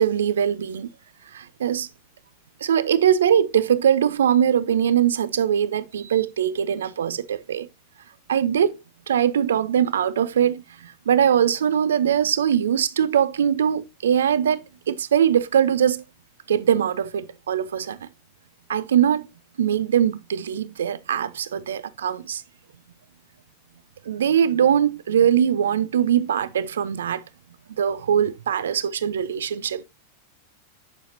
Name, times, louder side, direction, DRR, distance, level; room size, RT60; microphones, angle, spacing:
voice 1, 0.0-0.9 1.3-1.9 2.6-7.7 8.3-8.8 9.1-16.0 16.5-18.1 18.7-19.3 19.6-22.4 24.0-27.2 27.8-29.8, right 9 dB, 65° right, 0.5 m, -21 dB
9.5 x 6.5 x 2.7 m
figure-of-eight pair, 90°, 0 cm